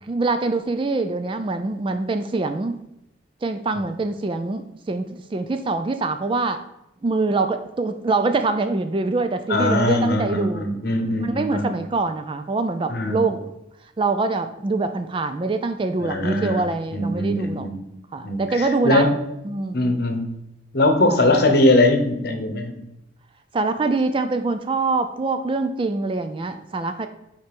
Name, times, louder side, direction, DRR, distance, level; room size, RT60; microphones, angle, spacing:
voice 1, 0.0-2.8 3.4-6.6 7.0-10.6 11.2-13.5 14.0-17.7 18.1-19.1 19.4-20.0 23.5-27.1, right 3 dB, 25° right, 8 dB, 0.3 m, -24 dB
voice 2, 9.5-11.8 12.9-13.2 16.0-16.6 16.9-17.8 18.2-19.2 19.7-20.3 20.7-22.8, left 1 dB, 50° left, 5 dB, 0.9 m, -21 dB
5.6 x 4.4 x 5.2 m, 0.86 s
head